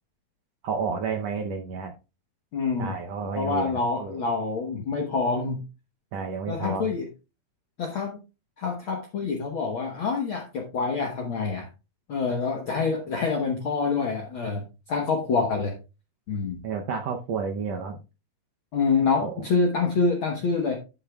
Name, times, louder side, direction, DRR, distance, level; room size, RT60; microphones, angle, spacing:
voice 1, 0.6-1.9 2.8-4.2 6.1-6.9 16.6-18.0 19.2-19.3, right 5 dB, 90° right, 2 dB, 1.4 m, -31 dB
voice 2, 2.5-3.0 3.4-5.6 6.5-7.1 7.8-8.2 8.6-11.7 12.1-15.7 16.3-16.6 18.7-20.8, left 4 dB, 80° left, 2 dB, 1.1 m, -26 dB
11.5 x 8.6 x 2.3 m, 0.30 s
omnidirectional pair, 4.2 m